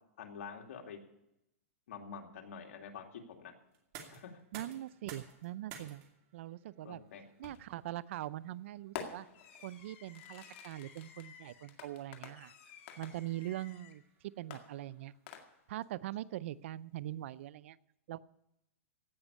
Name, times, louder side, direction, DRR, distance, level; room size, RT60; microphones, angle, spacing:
voice 1, 0.2-1.0 1.9-3.5 4.1-4.4 6.8-7.2, left 6 dB, 70° left, 3 dB, 2.5 m, -47 dB
sound 1, 3.7-15.5, right 7 dB, 35° right, 2.5 m, -57 dB
voice 2, 4.5-6.0 6.3-7.0 7.4-9.3 9.6-12.5 13.0-15.1 15.7-17.8 18.1-18.2, right 14 dB, 55° right, 18 dB, 0.5 m, -42 dB
Fireworks, 7.4-7.8 9.0-14.0 14.5-15.8, left 8 dB, 50° left, 2.0 m, -50 dB
16.5 x 6.2 x 9.8 m, 0.84 s
hypercardioid pair, 150°, 8 cm